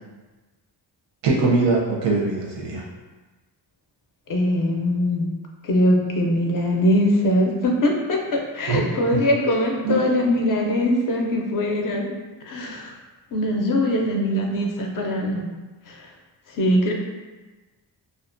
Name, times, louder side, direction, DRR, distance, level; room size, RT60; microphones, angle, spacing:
voice 1, 1.2-2.8 8.7-8.9 9.1-9.2 9.8-10.0, right 3 dB, 85° right, -2 dB, 0.7 m, -21 dB
voice 2, 4.3-5.3 5.6-12.1 12.4-12.9 13.3-15.5 15.9-16.0 16.5-16.9, left 1 dB, 50° left, 0 dB, 0.4 m, -22 dB
2.4 x 2.1 x 2.5 m, 1.2 s
wide cardioid pair, 110°, 43 cm